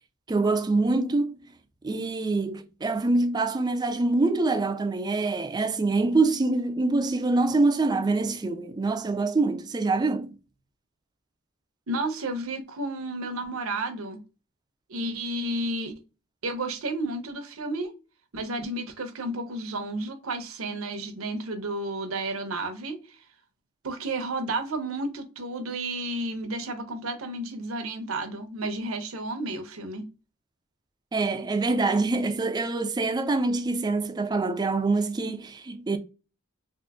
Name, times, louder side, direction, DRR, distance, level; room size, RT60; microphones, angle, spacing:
voice 1, 0.3-1.4 1.8-10.3 31.1-36.0, right 3 dB, 20° right, 0.3 m, -25 dB
voice 2, 11.9-14.2 14.9-15.9 16.4-17.9 18.3-23.0 23.8-30.1, right 2 dB, 75° right, 0.7 m, -32 dB
3.7 x 2.5 x 2.3 m
head